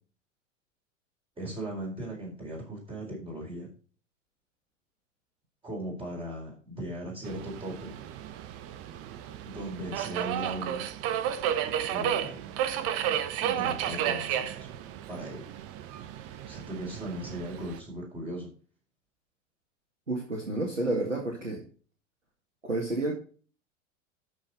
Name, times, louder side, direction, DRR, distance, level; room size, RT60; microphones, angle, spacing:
voice 1, 1.4-3.7 5.6-7.9 9.4-10.9 11.9-12.4 13.4-14.7 15.1-15.6 16.2-18.5, right 1 dB, 15° right, -3 dB, 4.3 m, -38 dB
Subway metro underground, 7.2-17.8, right 10 dB, 40° right, 1.1 m, -33 dB
voice 2, 20.1-21.6 22.6-23.1, right 2 dB, 85° right, 0 dB, 2.2 m, -30 dB
13.0 x 5.6 x 4.1 m, 0.40 s
figure-of-eight pair, 85°, 37 cm